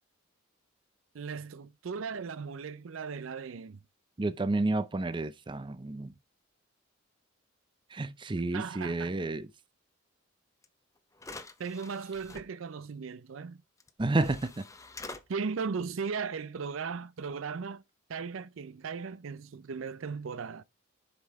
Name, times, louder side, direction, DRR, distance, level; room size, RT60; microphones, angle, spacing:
voice 1, 1.1-3.8 8.5-9.2 11.6-13.6 15.3-17.8 18.1-20.6, right 5 dB, 75° right, 0.5 m, -37 dB
voice 2, 4.2-6.1 7.9-9.5 14.0-14.6, right 2 dB, 25° right, 0.5 m, -30 dB
sound 1, 10.6-10.7 11.2-12.4 13.8-13.9 14.2-15.2, left 3 dB, 15° left, 0.6 m, -45 dB
7.9 x 5.6 x 3.4 m
head